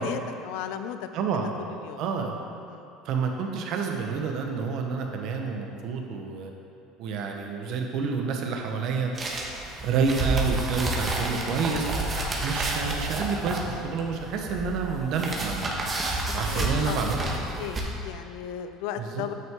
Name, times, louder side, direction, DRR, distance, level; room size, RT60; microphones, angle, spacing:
voice 1, 0.0-1.1 1.7-2.0 2.7-2.9 12.2-12.4 16.5-17.1 17.6-19.3, left 9 dB, 75° left, 9 dB, 0.4 m, -36 dB
voice 2, 1.1-1.5 2.0-2.3 3.0-6.5 7.0-9.1 9.8-11.9 12.4-15.9 16.3-17.2 19.0-19.2, right 5 dB, 60° right, 2 dB, 1.0 m, -29 dB
sound 1, 9.1-17.8, right 2 dB, 30° right, 1.3 m, -30 dB
9.0 x 6.1 x 3.7 m, 2.6 s
supercardioid pair, 100°, 0 cm